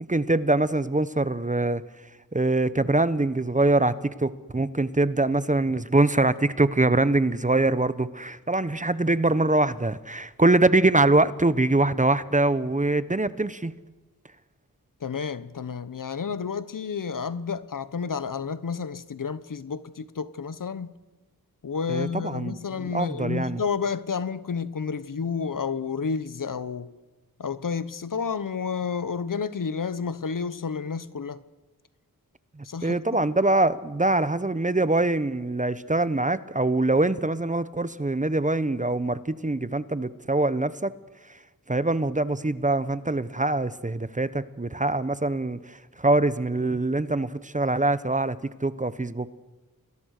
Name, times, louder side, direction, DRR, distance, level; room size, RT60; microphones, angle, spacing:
voice 1, 0.1-1.8 2.3-13.7 21.9-23.6 32.6-40.9 41.7-49.3, right 2 dB, 20° right, 1.0 m, -24 dB
voice 2, 15.0-20.9 21.6-26.9 27.4-31.4 32.6-33.2, left 6 dB, 60° left, 1.1 m, -30 dB
28.5 x 21.5 x 6.6 m
wide cardioid pair, 80°, 36 cm